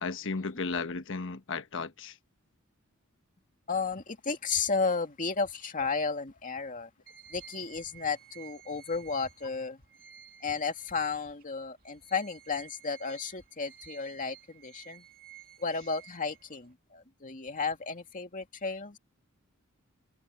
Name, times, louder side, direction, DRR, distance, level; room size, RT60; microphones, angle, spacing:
voice 1, 0.0-2.1, left 4 dB, 65° left, 1.2 m, -34 dB
voice 2, 3.7-6.9 7.3-9.8 10.4-15.1 15.6-19.0, left 4 dB, 40° left, 2.3 m, -33 dB
sound 1, 7.1-11.4 11.8-16.7, right 10 dB, 45° right, 2.3 m, -54 dB
head